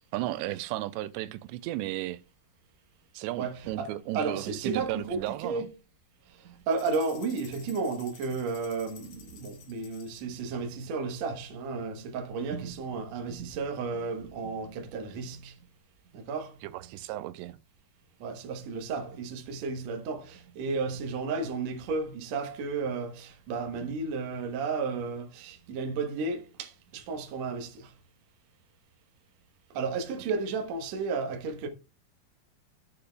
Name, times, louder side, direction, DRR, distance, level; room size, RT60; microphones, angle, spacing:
voice 1, 0.1-2.2 3.1-5.7 16.6-17.6, right 15 dB, 90° right, 2.8 m, -34 dB
voice 2, 3.4-5.7 6.7-15.6 16.1-16.5 18.2-27.9 29.7-31.7, right 4 dB, 65° right, 1.7 m, -33 dB
sound 1, 6.7-10.4, left 7 dB, 90° left, 1.3 m, -52 dB
13.5 x 6.8 x 2.3 m
omnidirectional pair, 4.9 m